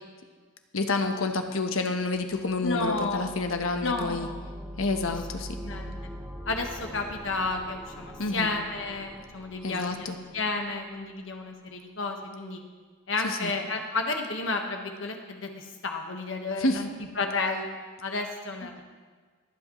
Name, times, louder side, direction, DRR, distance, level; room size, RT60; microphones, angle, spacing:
voice 1, 0.7-4.3 4.8-5.6 8.2-8.5 9.6-10.2 13.2-13.5 16.6-16.8, left 3 dB, 85° left, 6 dB, 1.0 m, -29 dB
sound 1, 2.2-11.0, equal, 10° right, 0.8 m, -43 dB
voice 2, 2.6-3.2 3.8-4.4 5.6-5.9 6.5-10.1 10.3-12.6 13.1-17.7 18.0-18.7, left 3 dB, 65° left, 3 dB, 1.3 m, -31 dB
21.5 x 8.0 x 3.1 m, 1.5 s
head